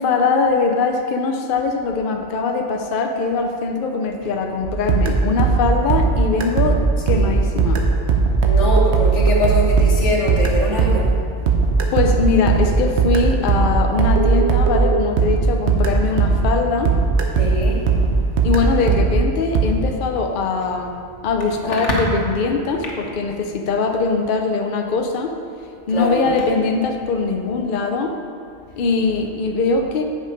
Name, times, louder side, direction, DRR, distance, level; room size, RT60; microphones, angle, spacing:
voice 1, 0.0-6.8 7.1-7.8 11.9-16.9 18.4-20.9 21.2-25.3 25.9-28.1 28.8-30.0, left 4 dB, 55° left, 4 dB, 0.7 m, -21 dB
sound 1, 4.6-16.6 16.9-19.7, right 4 dB, 70° right, 1.1 m, -18 dB
voice 2, 8.4-11.1 11.8-11.9 17.4-18.3 21.7-21.8 25.9-26.3, left 1 dB, 85° left, -2 dB, 1.7 m, -23 dB
8.9 x 5.2 x 5.0 m, 2.4 s
omnidirectional pair, 1.2 m